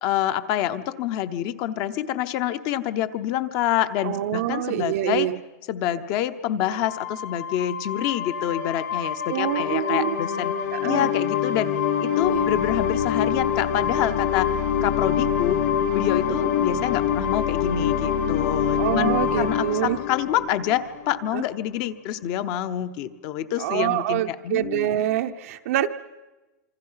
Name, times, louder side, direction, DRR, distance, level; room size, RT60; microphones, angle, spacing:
voice 1, 0.0-5.3 5.7-10.6 10.8-11.7 12.0-14.5 14.8-15.6 15.9-24.9, left 11 dB, 30° left, 11 dB, 0.8 m, -27 dB
voice 2, 4.0-5.4 9.3-10.2 10.7-11.1 12.3-12.5 16.3-16.4 18.8-20.0 21.3-21.4 23.6-25.9, right 13 dB, 50° right, 6 dB, 0.7 m, -26 dB
sound 1, 6.9-21.3, left 8 dB, 65° left, 3.4 m, -25 dB
26.5 x 24.5 x 5.7 m, 1.1 s
supercardioid pair, 175°, 9 cm